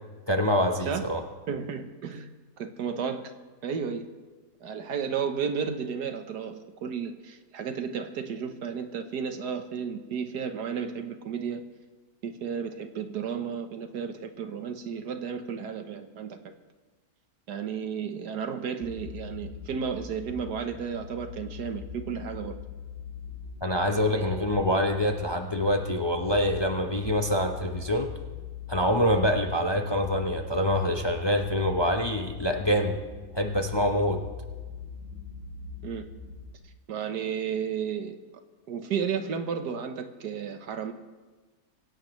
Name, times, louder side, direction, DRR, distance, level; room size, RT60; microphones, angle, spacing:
voice 1, 0.3-1.2 23.6-28.1 28.7-33.0 33.3-34.2, equal, 20° left, 4 dB, 0.8 m, -25 dB
voice 2, 1.5-2.3 2.6-3.3 3.6-4.1 4.6-11.6 12.2-16.4 17.5-22.6 23.9-24.5 35.8-36.1 36.9-38.2 38.7-40.9, right 7 dB, 85° right, 7 dB, 1.7 m, -33 dB
sound 1, 18.8-36.5, left 6 dB, 40° right, 2.7 m, -41 dB
26.5 x 16.0 x 3.2 m, 1.3 s
omnidirectional pair, 1.7 m